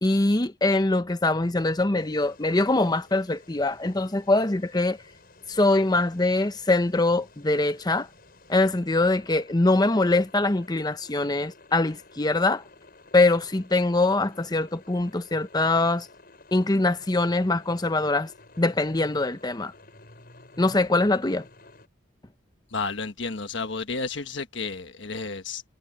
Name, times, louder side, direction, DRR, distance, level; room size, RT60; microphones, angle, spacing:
voice 1, 0.0-5.0 5.5-8.1 8.5-12.6 13.1-16.1 16.5-18.3 18.6-19.7 20.6-21.5, left 2 dB, 20° left, 0.8 m, -23 dB
sound 1, 2.0-21.9, left 2 dB, 50° left, 7.0 m, -53 dB
voice 2, 22.7-25.6, left 4 dB, 65° left, 1.4 m, -32 dB
head